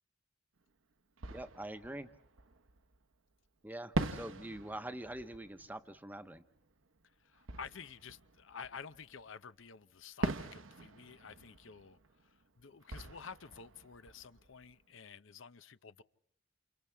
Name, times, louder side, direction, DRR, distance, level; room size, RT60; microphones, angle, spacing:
Fireworks, 0.6-0.7 1.2-3.1 3.9-9.3 10.2-15.0, right 2 dB, 85° right, 1.2 m, -43 dB
voice 1, 1.3-2.1 3.6-6.4, right 1 dB, 10° right, 0.9 m, -44 dB
voice 2, 7.2-16.0, left 6 dB, 75° left, 0.7 m, -51 dB
29.5 x 28.5 x 3.5 m
head